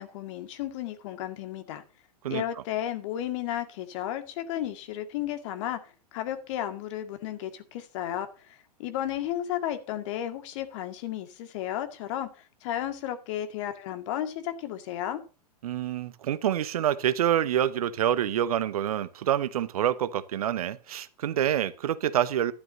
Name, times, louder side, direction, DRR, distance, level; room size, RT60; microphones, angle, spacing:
voice 1, 0.0-1.8 2.3-12.3 12.6-15.2, left 11 dB, 50° left, 2.1 m, -33 dB
voice 2, 15.6-22.5, right 10 dB, 65° right, 1.0 m, -27 dB
12.0 x 12.0 x 2.8 m
hypercardioid pair, 105°, 20 cm